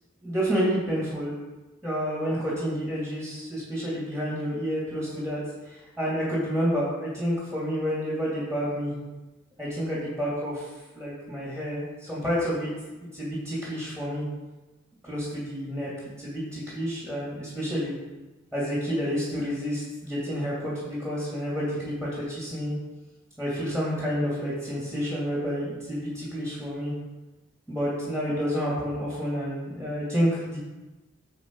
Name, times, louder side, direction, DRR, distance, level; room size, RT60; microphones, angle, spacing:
voice 1, 0.2-1.3 1.8-5.4 5.7-8.9 9.6-10.7 10.9-12.7 13.0-14.3 15.0-15.9 16.2-17.9 18.5-22.8 23.4-26.9 27.7-30.6, equal, 5° left, -7 dB, 2.7 m, -29 dB
9.8 x 4.7 x 4.7 m, 1.1 s
head